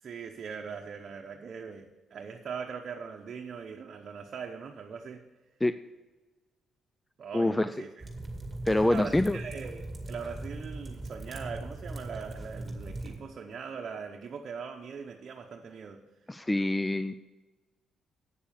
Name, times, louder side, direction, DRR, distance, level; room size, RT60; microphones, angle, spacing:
voice 1, 0.0-5.2 7.2-8.0 8.7-16.0, right 6 dB, 55° right, 3 dB, 0.8 m, -41 dB
voice 2, 7.3-7.7 8.7-9.4 16.3-17.1, left 1 dB, 15° left, 12 dB, 0.4 m, -25 dB
sound 1, 8.0-13.2, right 2 dB, 20° right, 2.2 m, -40 dB
8.5 x 7.0 x 6.9 m, 1.2 s
supercardioid pair, 65°, 0 cm